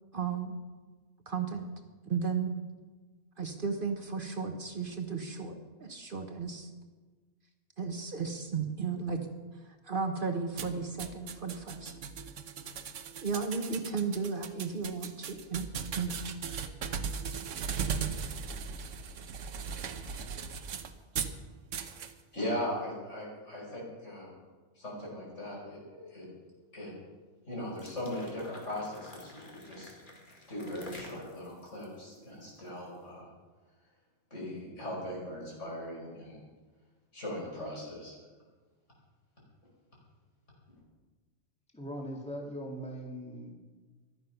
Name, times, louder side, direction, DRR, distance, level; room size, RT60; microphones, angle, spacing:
voice 1, 0.1-0.5 1.3-1.7 2.1-2.5 3.4-5.5 5.8-6.7 7.8-9.2 9.9-11.9 13.2-15.7 15.9-16.1, right 5 dB, 45° right, 5 dB, 1.2 m, -34 dB
sound 1, 10.6-21.4 21.7-22.1, right 6 dB, 80° right, 1.2 m, -38 dB
voice 2, 22.3-24.3 24.8-26.3 26.7-26.9 27.5-29.9 30.5-33.3 34.3-36.4 37.1-38.1, left 1 dB, 75° left, -4 dB, 5.7 m, -39 dB
sound 2, 27.6-32.9, left 2 dB, 40° left, 2.3 m, -51 dB
voice 3, 41.7-43.5, equal, 5° left, -1 dB, 2.3 m, -40 dB
14.5 x 12.0 x 5.8 m, 1.3 s
omnidirectional pair, 1.3 m